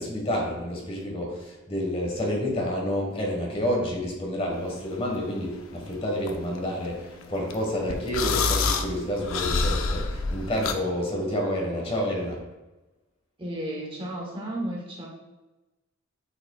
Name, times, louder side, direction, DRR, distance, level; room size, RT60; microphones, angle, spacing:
voice 1, 0.0-12.4, equal, 30° left, -1 dB, 1.4 m, -29 dB
sound 1, 4.5-10.7, left 4 dB, 85° left, 0.6 m, -28 dB
voice 2, 13.4-15.1, right 1 dB, 25° right, -2 dB, 1.0 m, -33 dB
8.6 x 4.9 x 2.4 m, 1.1 s
head